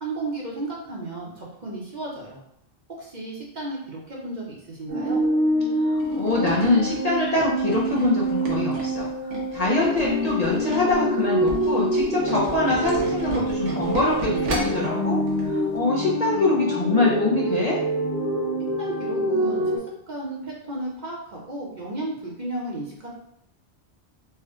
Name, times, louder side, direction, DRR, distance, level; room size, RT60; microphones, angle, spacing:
voice 1, 0.0-2.4 3.0-5.2 18.8-19.7 20.1-23.1, right 2 dB, 45° right, -3 dB, 0.9 m, -33 dB
sound 1, 4.9-19.8, right 1 dB, 70° right, 1.3 m, -26 dB
voice 2, 5.8-9.1 9.5-15.2 15.5-17.8, left 2 dB, 45° left, -5 dB, 0.6 m, -24 dB
Tools, 6.0-11.0 11.3-14.9 15.3-15.5 15.8-15.9, right 1 dB, 90° right, 1.2 m, -33 dB
sound 2, 7.7-8.5 10.5-11.6 13.7-14.5 17.1-17.7, right 1 dB, 10° right, 1.0 m, -40 dB
4.3 x 2.2 x 3.6 m, 0.74 s
omnidirectional pair, 1.2 m